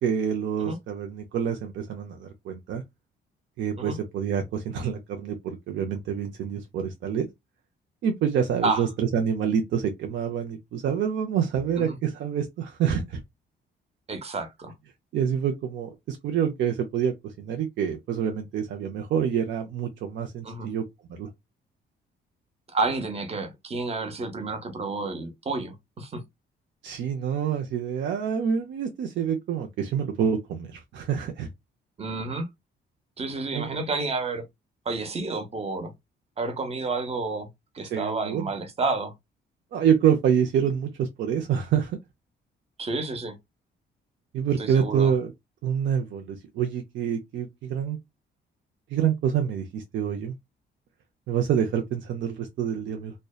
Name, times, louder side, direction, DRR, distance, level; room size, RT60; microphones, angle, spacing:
voice 1, 0.0-2.8 3.6-7.3 8.0-13.2 15.1-20.8 21.1-21.3 26.8-31.5 33.5-33.8 37.9-38.4 39.7-42.0 44.3-45.3 45.6-48.0 48.9-50.3 51.3-53.1, right 8 dB, 65° right, 0.5 m, -27 dB
voice 2, 14.1-14.7 20.4-20.7 22.7-26.2 32.0-32.5 33.2-34.5 34.9-35.9 36.4-37.5 37.7-39.1 42.8-43.4 44.6-45.1, right 3 dB, 30° right, 0.7 m, -30 dB
2.6 x 2.1 x 2.3 m
cardioid pair, 90°, 20 cm